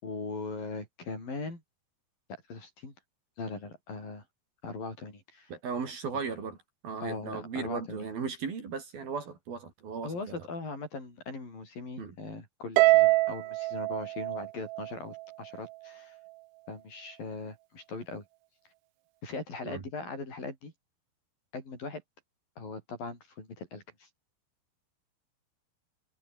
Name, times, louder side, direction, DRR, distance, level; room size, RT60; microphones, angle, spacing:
voice 1, 0.0-1.6 2.5-2.9 3.4-4.2 4.6-5.5 7.0-8.1 10.0-16.2 16.7-18.3 19.2-20.7 21.5-22.0 22.6-24.1, left 3 dB, 50° left, 9.6 m, -40 dB
voice 2, 5.5-6.6 6.8-10.2 12.0-12.1 19.7-19.8, right 5 dB, 55° right, 5.8 m, -36 dB
Harp, 12.8-15.2, right 21 dB, 85° right, 3.0 m, -24 dB
omnidirectional pair, 5.4 m